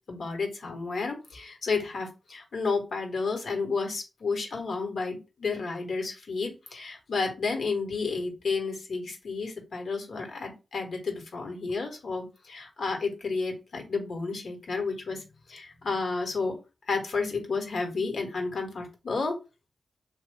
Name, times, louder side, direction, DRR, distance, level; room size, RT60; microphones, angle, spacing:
voice 1, 0.1-15.2 15.5-16.6 16.9-19.4, left 4 dB, 80° left, 3 dB, 1.0 m, -31 dB
3.1 x 2.1 x 3.5 m, 0.29 s
cardioid pair, 70°, 0 cm